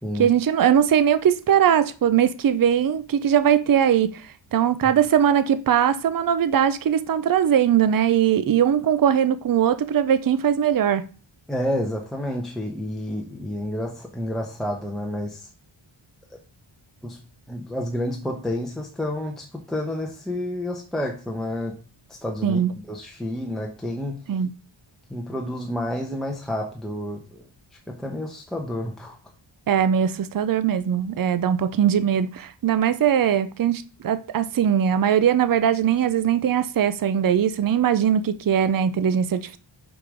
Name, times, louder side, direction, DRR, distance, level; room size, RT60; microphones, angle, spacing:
voice 1, 0.1-11.1 22.4-22.7 24.3-24.5 29.7-39.6, right 9 dB, 45° right, 0.6 m, -20 dB
voice 2, 11.5-15.5 17.0-17.2 17.5-21.7 22.1-22.6 22.9-24.2 25.1-27.4 27.9-29.2, left 1 dB, ahead, 1.0 m, -29 dB
5.7 x 5.0 x 5.0 m
wide cardioid pair, 140°, 49 cm